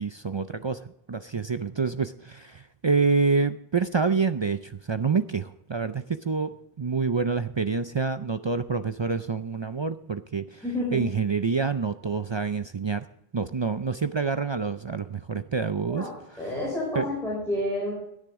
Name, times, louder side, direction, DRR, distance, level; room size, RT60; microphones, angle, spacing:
voice 1, 0.0-6.5 6.8-10.6 10.9-13.0 13.3-16.1 16.3-16.5 16.9-17.1, right 4 dB, 45° right, 10 dB, 0.3 m, -27 dB
voice 2, 10.6-11.0 15.9-16.1 16.4-17.9, left 1 dB, ahead, -6 dB, 5.8 m, -29 dB
17.0 x 9.9 x 3.6 m, 0.77 s
omnidirectional pair, 1.1 m